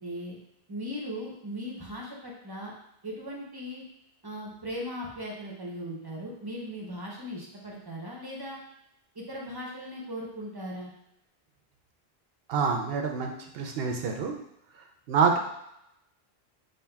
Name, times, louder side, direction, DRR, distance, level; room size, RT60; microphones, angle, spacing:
voice 1, 0.0-0.4 0.7-2.7 3.0-3.8 4.2-8.6 9.1-10.9, equal, 25° right, -3 dB, 0.7 m, -38 dB
voice 2, 12.5-14.4 15.1-15.4, right 5 dB, 75° right, 3 dB, 0.8 m, -26 dB
5.5 x 2.7 x 2.2 m, 0.80 s
omnidirectional pair, 1.0 m